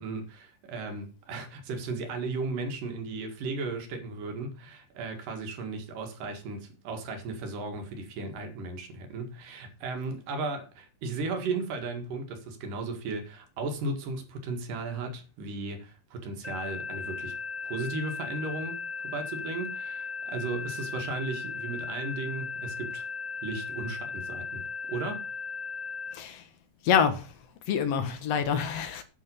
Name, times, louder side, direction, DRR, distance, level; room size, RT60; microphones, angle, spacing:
voice 1, 0.0-17.4 17.6-18.8 19.0-23.1 23.4-25.3, right 3 dB, 90° right, 3.5 m, -35 dB
sound 1, 16.4-26.1, left 5 dB, 10° left, 3.1 m, -37 dB
voice 2, 26.1-26.5 26.8-27.4 27.7-29.0, left 7 dB, 60° left, 2.2 m, -26 dB
9.3 x 6.6 x 7.0 m
omnidirectional pair, 3.7 m